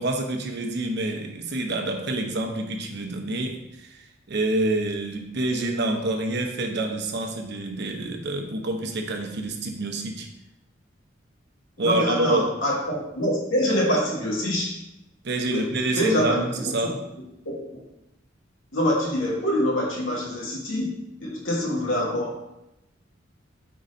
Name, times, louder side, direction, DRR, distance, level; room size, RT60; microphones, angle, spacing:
voice 1, 0.0-10.3 11.8-12.5 15.2-17.0, right 2 dB, 60° right, 4 dB, 0.8 m, -27 dB
voice 2, 11.8-14.7 15.5-15.7 16.0-16.4 17.5-17.6 18.7-20.9 21.2-22.4, equal, 80° left, -3 dB, 1.8 m, -25 dB
4.7 x 4.1 x 5.2 m, 0.89 s
head